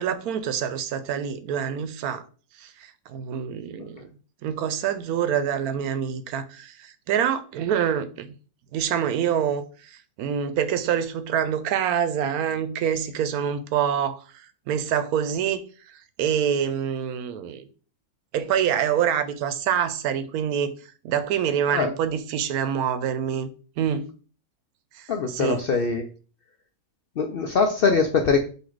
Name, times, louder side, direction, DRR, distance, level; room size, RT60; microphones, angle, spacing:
voice 1, 0.0-2.2 2.6-4.1 4.4-8.3 8.7-15.6 16.2-17.6 18.3-20.7 21.0-23.5 23.8-24.1 24.9-25.6, right 8 dB, 85° right, 1.1 m, -26 dB
voice 2, 25.1-26.0 27.2-28.4, left 5 dB, 65° left, 0.5 m, -22 dB
4.1 x 2.8 x 4.5 m
omnidirectional pair, 1.5 m